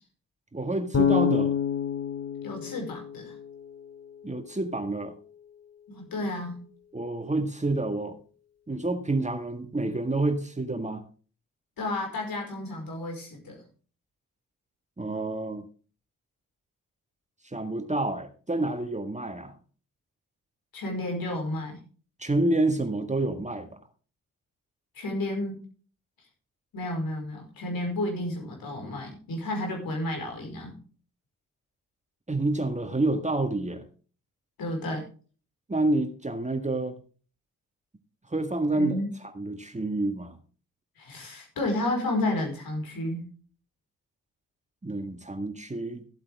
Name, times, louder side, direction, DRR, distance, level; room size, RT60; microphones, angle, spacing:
voice 1, 0.5-1.5 4.2-5.1 6.9-8.2 8.7-11.0 15.0-15.7 17.4-19.5 22.2-23.8 32.3-33.8 35.7-37.0 38.3-39.0 39.4-40.4 44.8-46.0, right 2 dB, 20° right, 7 dB, 1.8 m, -28 dB
Bass guitar, 0.9-4.0, left 7 dB, 45° left, 3.0 m, -27 dB
voice 2, 2.4-3.3 5.9-6.6 11.8-13.6 20.7-21.8 24.9-25.6 26.7-30.8 34.6-35.0 38.7-39.1 41.0-43.2, left 1 dB, 70° left, 2 dB, 5.2 m, -31 dB
14.5 x 8.5 x 3.6 m, 0.39 s
supercardioid pair, 45°, 36 cm